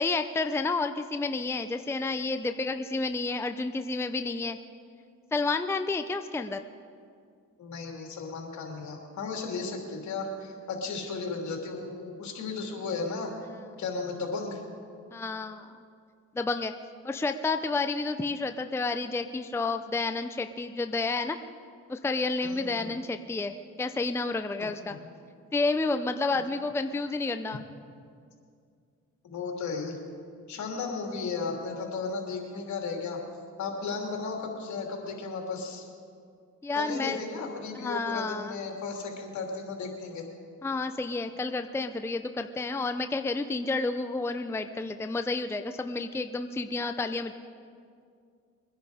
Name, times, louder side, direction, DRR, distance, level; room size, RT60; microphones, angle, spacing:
voice 1, 0.0-4.6 5.3-6.6 15.1-15.7 16.3-16.7 17.0-21.4 21.9-25.0 25.5-27.6 36.6-37.2 37.7-38.6 40.6-47.3, left 3 dB, 10° left, 8 dB, 0.5 m, -30 dB
voice 2, 7.6-13.3 13.8-14.6 22.4-22.9 24.6-25.1 29.2-30.0 30.5-33.2 33.6-35.9 36.7-40.2, left 4 dB, 70° left, 1 dB, 3.0 m, -35 dB
22.5 x 10.5 x 5.0 m, 2.3 s
cardioid pair, 90°, 30 cm